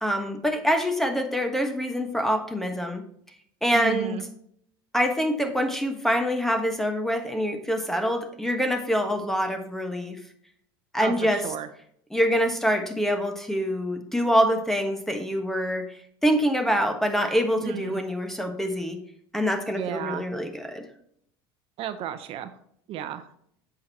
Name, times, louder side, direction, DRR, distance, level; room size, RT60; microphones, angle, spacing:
voice 1, 0.0-3.0 3.6-4.2 4.9-10.2 10.9-11.4 12.1-19.0 19.3-20.9, equal, 5° left, 6 dB, 1.2 m, -25 dB
voice 2, 3.7-4.2 11.0-11.7 17.6-18.0 19.7-20.2 21.8-22.5 22.9-23.3, right 10 dB, 55° right, 10 dB, 0.8 m, -33 dB
8.6 x 6.3 x 2.8 m, 0.69 s
supercardioid pair, 105°, 12 cm